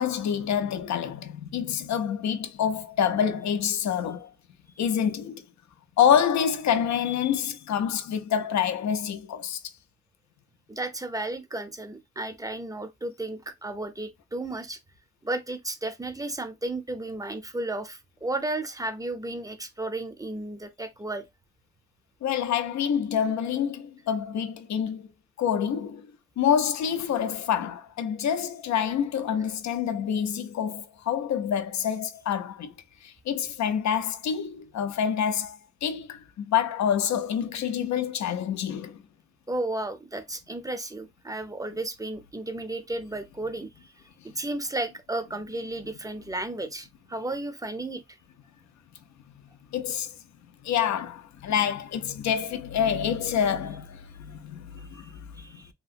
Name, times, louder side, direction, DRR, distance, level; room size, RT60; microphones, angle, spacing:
voice 1, 0.0-4.3 4.8-5.4 6.0-9.6 22.2-25.1 25.4-26.1 26.4-32.7 33.0-39.0 49.7-50.2 50.6-55.2, left 8 dB, 70° left, 0.5 m, -27 dB
voice 2, 10.7-14.8 15.2-21.2 39.5-43.9 44.2-48.0 55.0-55.7, right 2 dB, 10° right, 0.6 m, -33 dB
2.9 x 2.7 x 2.4 m
cardioid pair, 75°, 29 cm